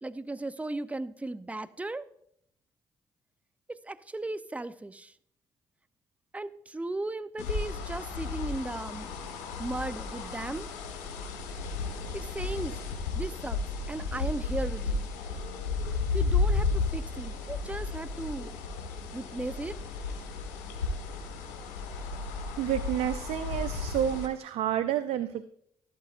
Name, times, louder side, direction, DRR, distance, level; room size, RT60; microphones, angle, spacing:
voice 1, 0.0-2.1 3.7-5.1 6.3-9.1 9.6-10.7 12.1-12.7 13.1-13.6 13.9-15.1 16.1-18.5 19.1-19.8, right 2 dB, 15° right, 13 dB, 0.6 m, -36 dB
sound 1, 7.4-24.3, left 4 dB, 85° left, 1.5 m, -33 dB
voice 2, 22.6-25.4, right 10 dB, 70° right, 12 dB, 0.5 m, -29 dB
12.0 x 12.0 x 2.5 m, 0.69 s
hypercardioid pair, 50°, 11 cm